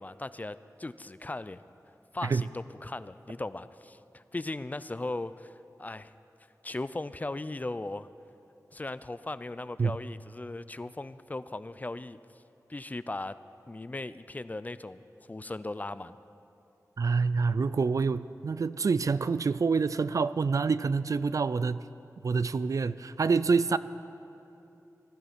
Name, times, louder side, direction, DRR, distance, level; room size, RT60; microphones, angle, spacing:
voice 1, 0.0-1.6 2.1-6.1 6.6-8.1 8.7-12.2 12.7-13.4 13.7-15.0 15.3-16.2, left 2 dB, 25° left, 14 dB, 0.4 m, -38 dB
voice 2, 17.0-21.8 22.2-23.8, right 4 dB, 60° right, 15 dB, 0.3 m, -27 dB
16.0 x 13.0 x 5.1 m, 2.8 s
wide cardioid pair, 95°, 6 cm